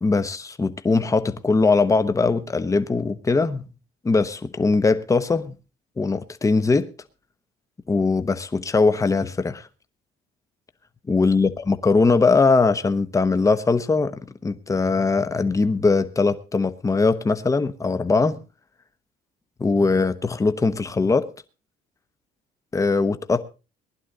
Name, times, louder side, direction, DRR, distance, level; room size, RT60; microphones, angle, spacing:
voice 1, 0.0-3.6 4.0-5.5 6.0-6.9 7.9-9.7 11.1-14.2 14.4-18.4 19.6-21.3 22.7-23.4, left 4 dB, 20° left, 1.1 m, -21 dB
19.5 x 11.0 x 3.9 m
cardioid pair, 110°, 17 cm